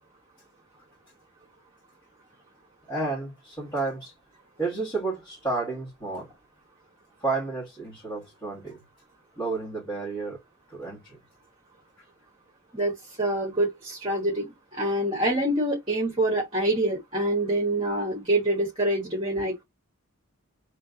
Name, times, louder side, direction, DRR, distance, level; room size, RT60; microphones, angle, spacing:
voice 1, 2.9-4.1 4.6-6.3 7.2-8.8 9.4-10.4 10.7-11.2, right 3 dB, 20° left, 2.0 m, -31 dB
voice 2, 13.2-19.5, right 1 dB, 25° right, 1.2 m, -26 dB
3.3 x 3.2 x 3.9 m
head